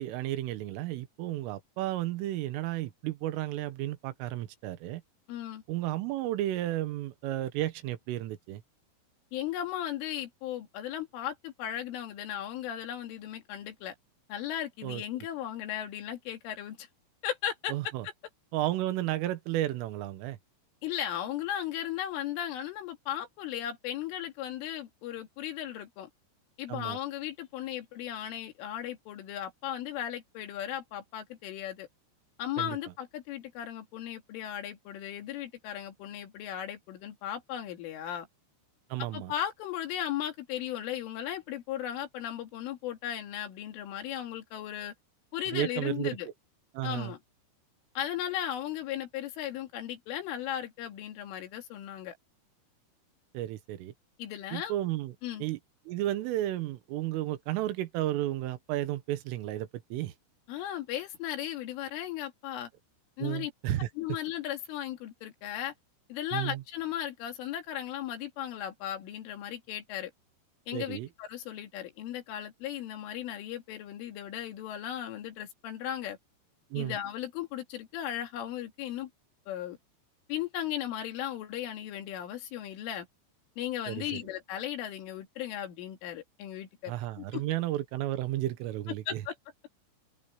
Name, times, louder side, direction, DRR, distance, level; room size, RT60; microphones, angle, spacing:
voice 1, 0.0-5.0 5.7-8.6 14.8-15.0 17.7-18.1 18.5-20.4 26.7-27.0 32.6-32.8 38.9-39.3 45.5-46.2 46.8-47.1 53.3-53.9 54.5-55.1 55.4-55.6 55.9-60.1 63.2-63.9 66.3-66.6 70.7-71.1 76.7-77.0 83.9-84.2 86.9-89.2, right 14 dB, 85° right, 3.9 m, -33 dB
voice 2, 5.3-5.6 9.3-14.0 14.3-16.9 17.2-17.7 18.0-18.1 20.8-26.1 26.6-31.9 32.4-38.3 39.1-44.9 45.3-46.3 46.8-47.2 48.0-52.2 54.2-54.8 55.2-55.5 60.5-62.7 63.2-63.5 64.0-65.7 66.1-70.1 70.7-76.2 76.8-79.1 79.5-79.8 80.3-83.1 83.6-87.4 89.1-89.4, left 11 dB, 80° left, 4.9 m, -36 dB
open air
omnidirectional pair, 5.7 m